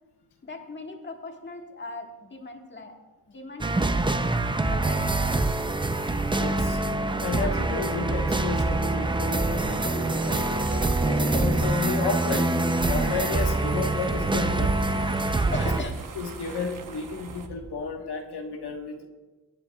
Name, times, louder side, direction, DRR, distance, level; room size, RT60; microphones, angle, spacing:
voice 1, 0.4-3.0 3.3-4.3 4.7-5.4 15.5-16.0, left 3 dB, 25° left, 2 dB, 1.4 m, -39 dB
sound 1, 3.6-15.8, right 2 dB, 10° right, 0.5 m, -25 dB
sound 2, 4.5-17.5, right 4 dB, 50° right, 0.9 m, -38 dB
voice 2, 6.4-6.8 7.2-12.5 12.8-14.7 16.1-19.1, left 4 dB, 70° left, 2 dB, 1.4 m, -32 dB
Thunder, 16.4-17.8, right 2 dB, 80° right, 2.8 m, -47 dB
23.5 x 9.7 x 2.3 m, 1.2 s
wide cardioid pair, 115°, 41 cm